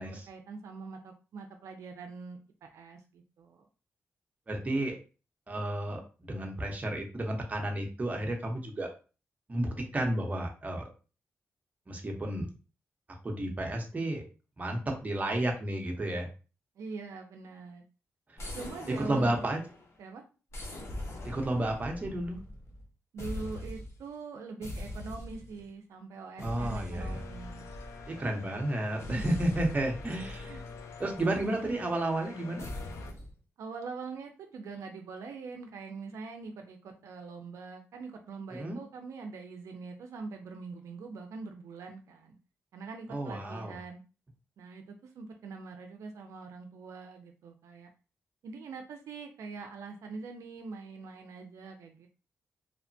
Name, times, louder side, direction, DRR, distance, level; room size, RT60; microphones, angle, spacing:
voice 1, 0.0-3.7 16.8-17.8 18.5-19.5 20.0-20.2 23.1-27.7 29.0-29.4 30.5-30.8 33.6-42.4 42.7-44.0 44.6-47.9 48.4-52.1, right 4 dB, 85° right, 4 dB, 0.4 m, -43 dB
voice 2, 4.5-4.9 5.5-8.9 9.5-10.9 11.9-12.5 13.2-14.2 14.6-16.3 18.3-18.4 19.1-19.6 21.2-22.4 26.4-27.2 28.1-30.6 31.0-32.7 38.5-38.8 43.1-43.8, right 1 dB, 30° right, 1 dB, 0.8 m, -32 dB
sound 1, 18.4-20.0 20.5-22.9 23.2-24.0 24.6-25.6 26.4-28.3 29.0-31.4 32.6-33.3, left 1 dB, 60° left, 0.7 m, -41 dB
sound 2, 27.0-33.1, left 5 dB, 90° left, 0.4 m, -47 dB
2.9 x 2.1 x 2.6 m, 0.34 s
cardioid pair, 75°, 5 cm